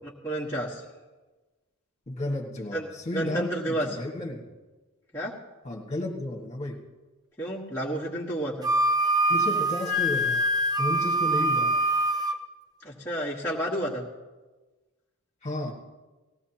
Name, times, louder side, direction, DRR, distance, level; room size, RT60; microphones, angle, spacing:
voice 1, 0.2-0.8 2.7-3.9 5.1-5.3 7.4-8.7 12.8-14.1, right 1 dB, 10° left, -7 dB, 1.5 m, -31 dB
voice 2, 2.1-4.4 5.6-6.8 9.3-10.4 10.8-11.7 15.4-15.7, left 1 dB, 30° left, -2 dB, 1.7 m, -32 dB
Wind instrument woodwind instrument, 8.6-12.4, right 1 dB, 20° right, 0.7 m, -24 dB
19.0 x 16.0 x 2.9 m, 1.2 s
head